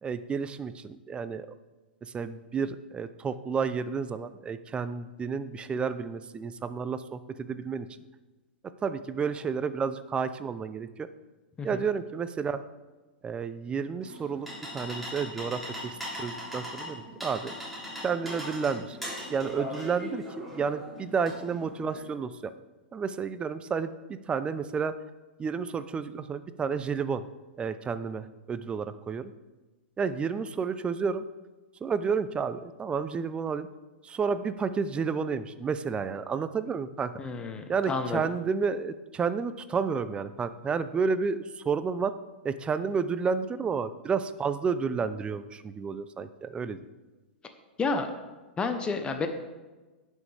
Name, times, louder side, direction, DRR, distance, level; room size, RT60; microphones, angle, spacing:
voice 1, 0.0-1.5 2.0-7.9 8.8-11.1 11.6-12.6 13.2-14.5 14.7-17.5 18.0-19.0 19.3-22.5 22.9-24.9 25.4-27.2 27.6-29.3 30.0-31.2 31.8-33.7 34.0-37.1 37.7-42.1 42.4-46.8, right 5 dB, 20° right, 13 dB, 0.6 m, -31 dB
sound 1, 14.0-22.0, equal, ahead, 3.4 m, -40 dB
voice 2, 37.2-38.2 47.8-48.1 48.6-49.3, left 4 dB, 15° left, 6 dB, 1.0 m, -30 dB
18.0 x 6.4 x 3.5 m, 1.2 s
hypercardioid pair, 105°, 6 cm